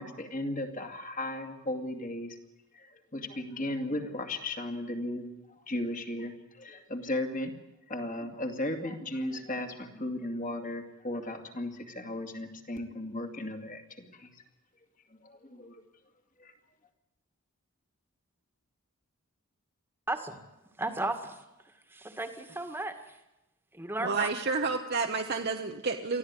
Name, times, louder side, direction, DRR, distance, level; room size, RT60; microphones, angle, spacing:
voice 1, 0.0-2.4 2.7-5.3 5.7-7.5 7.9-14.3 15.1-15.8 16.4-16.5, left 1 dB, 35° left, 5 dB, 2.4 m, -36 dB
voice 2, 20.1-20.4 20.8-21.4 21.9-23.2 23.7-24.3, right 2 dB, 10° right, 7 dB, 1.9 m, -35 dB
voice 3, 24.0-26.2, right 4 dB, 45° right, 4 dB, 1.1 m, -30 dB
24.0 x 14.5 x 9.7 m, 0.97 s
head